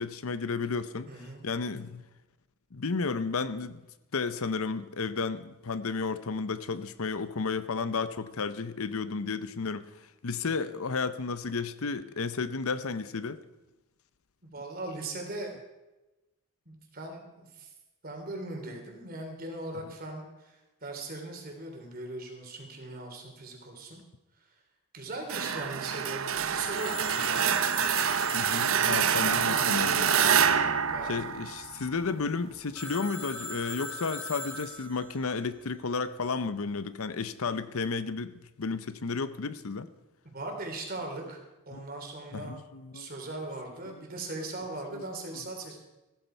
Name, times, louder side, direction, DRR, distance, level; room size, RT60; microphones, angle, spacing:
voice 1, 0.0-2.0 2.7-3.8 4.1-13.4 28.3-30.1 31.0-39.9 41.7-41.8 42.3-43.1 43.9-44.0 44.9-45.4, left 4 dB, 75° left, 0.7 m, -33 dB
voice 2, 1.1-1.4 14.4-15.5 16.6-17.7 18.0-24.0 24.9-27.6 28.6-31.1 40.2-41.4 41.7-42.5 42.9-45.8, right 2 dB, 40° right, 3.2 m, -39 dB
sound 1, 25.3-32.0, right 7 dB, 65° right, 0.8 m, -26 dB
Telephone, 26.7-30.4 32.7-35.3, left 1 dB, 10° left, 4.9 m, -40 dB
15.0 x 13.5 x 4.5 m
head